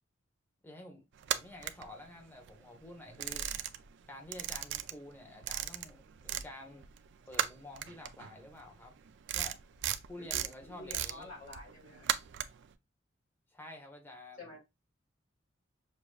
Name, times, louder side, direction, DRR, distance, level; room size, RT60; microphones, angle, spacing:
voice 1, 0.6-1.0 1.3-3.5 4.1-6.9 7.3-8.9 9.3-9.6 10.1-11.3 13.5-14.5, left 1 dB, 10° left, 1.1 m, -50 dB
sound 1, 1.2-2.5 2.8-4.0 4.3-6.5 6.8-12.7, right 10 dB, 65° right, 0.4 m, -36 dB
voice 2, 10.2-12.1 14.4-14.6, left 2 dB, 45° left, 1.8 m, -49 dB
6.5 x 2.9 x 2.3 m
head